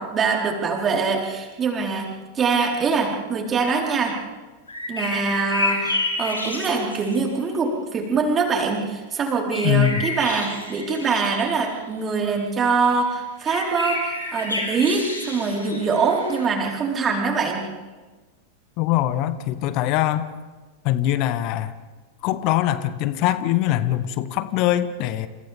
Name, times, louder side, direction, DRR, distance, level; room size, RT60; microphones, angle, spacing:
voice 1, 0.0-2.1 2.3-4.2 4.9-17.6, right 4 dB, 25° right, -1 dB, 4.5 m, -23 dB
sound 1, 4.7-7.2 9.5-11.5 12.3-12.4 12.9-13.0 13.5-16.5, left 2 dB, 80° left, 4.9 m, -30 dB
voice 2, 9.6-10.1 18.8-20.3 20.8-21.7 22.2-25.3, left 13 dB, 40° left, 14 dB, 1.1 m, -22 dB
29.0 x 28.5 x 3.6 m, 1.3 s
figure-of-eight pair, 90°, 0 cm